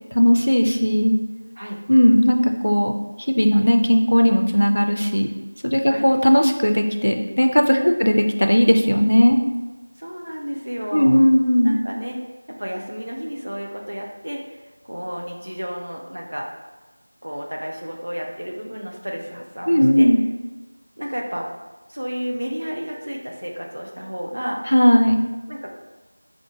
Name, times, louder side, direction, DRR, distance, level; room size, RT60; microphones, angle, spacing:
voice 1, 0.1-1.2 1.9-2.9 3.3-5.3 5.6-9.4 10.9-11.8 19.7-20.2 24.7-25.2, equal, 80° left, 4 dB, 0.4 m, -17 dB
voice 2, 10.0-11.2 11.6-12.2 12.5-16.5 17.2-20.1 21.0-21.5 21.9-24.6 25.5-25.8, equal, 55° right, -1 dB, 0.6 m, -31 dB
4.3 x 2.1 x 3.1 m, 1.2 s
figure-of-eight pair, 175°, 0 cm